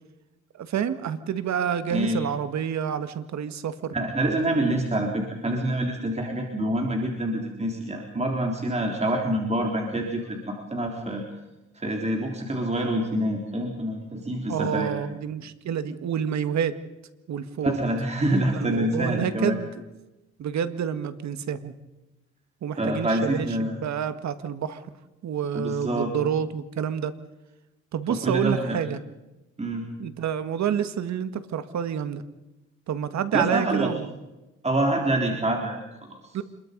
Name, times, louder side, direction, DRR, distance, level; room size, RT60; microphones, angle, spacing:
voice 1, 0.5-3.9 14.5-16.7 17.3-17.8 18.5-19.7 20.4-21.7 22.6-24.9 25.2-27.1 27.9-29.0 30.0-32.2 32.9-34.1 36.3-36.4, right 8 dB, 65° right, 11 dB, 1.9 m, -28 dB
voice 2, 3.9-11.2 11.7-15.0 17.6-19.6 22.8-23.8 25.5-26.1 28.1-28.8 29.6-29.9 33.3-33.9 34.6-36.4, right 1 dB, 20° right, 1 dB, 3.9 m, -26 dB
27.5 x 22.0 x 5.4 m, 1.0 s
cardioid pair, 90°, 30 cm